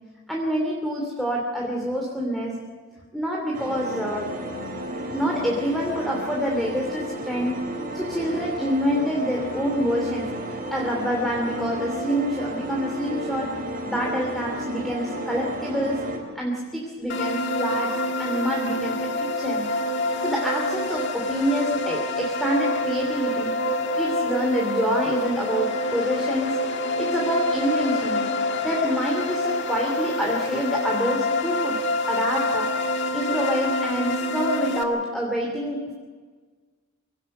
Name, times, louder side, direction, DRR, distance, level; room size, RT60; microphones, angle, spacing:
voice 1, 0.3-2.6 3.1-4.4 5.1-7.7 7.9-13.6 13.8-16.1 16.3-19.7 20.2-23.6 23.9-26.6 27.0-28.3 28.6-32.7 33.1-35.9, equal, ahead, -2 dB, 2.8 m, -27 dB
sound 1, 3.5-16.2, right 1 dB, 40° right, 4.1 m, -33 dB
sound 2, 17.1-34.8, left 1 dB, 55° left, 1.9 m, -26 dB
24.5 x 18.0 x 6.7 m, 1.5 s
head